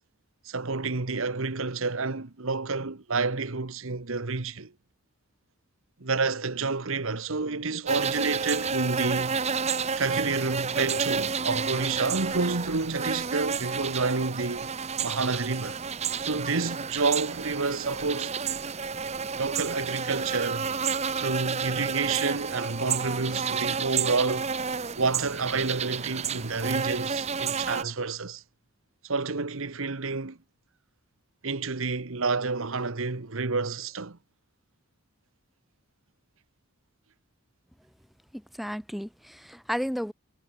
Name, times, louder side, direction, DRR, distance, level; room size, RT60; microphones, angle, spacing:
voice 1, 0.4-4.7 6.0-9.4 10.0-14.7 15.0-15.8 16.2-18.4 19.4-20.7 21.2-24.5 25.0-28.4 29.0-30.4 31.4-34.2, right 4 dB, 65° right, 1.2 m, -29 dB
sound 1, 7.9-27.8, right 6 dB, 30° right, 0.8 m, -30 dB
voice 2, 38.3-40.1, equal, ahead, 1.4 m, -33 dB
head